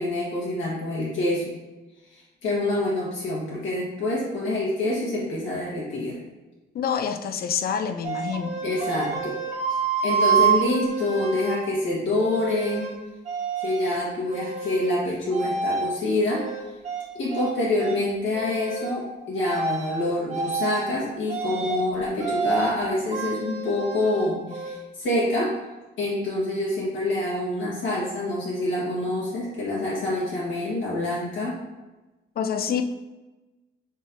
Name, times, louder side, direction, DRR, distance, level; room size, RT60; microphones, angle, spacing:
voice 1, 0.0-1.5 2.4-6.2 8.6-9.4 10.0-12.9 13.6-16.4 17.1-25.5 26.0-31.6, left 2 dB, 80° left, -6 dB, 1.5 m, -26 dB
voice 2, 6.7-8.5 32.4-32.8, left 7 dB, 50° left, 9 dB, 0.4 m, -27 dB
sound 1, 8.0-11.6 12.1-12.9 13.2-14.0 14.3-15.0 15.3-15.9 16.3-17.5 17.8-18.0 18.3-18.9 19.3-19.9 20.3-20.9 21.3-21.8 22.2-22.8 23.1-24.8, right 6 dB, 35° right, 1.2 m, -28 dB
5.2 x 3.4 x 2.7 m, 1.1 s
cardioid pair, 90°, 20 cm